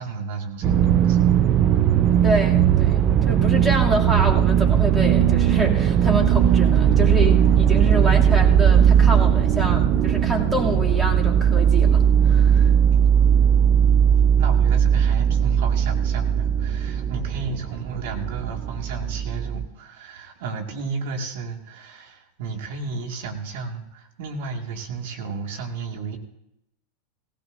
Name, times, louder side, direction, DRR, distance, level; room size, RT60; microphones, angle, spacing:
voice 1, 0.0-1.4 14.4-26.2, right 4 dB, 65° right, 3 dB, 2.1 m, -33 dB
sound 1, 0.6-19.7, right 9 dB, 45° right, 0.6 m, -18 dB
voice 2, 2.2-12.7, right 1 dB, 15° right, -2 dB, 2.7 m, -27 dB
18.0 x 16.0 x 2.7 m, 0.83 s
hypercardioid pair, 100°, 0 cm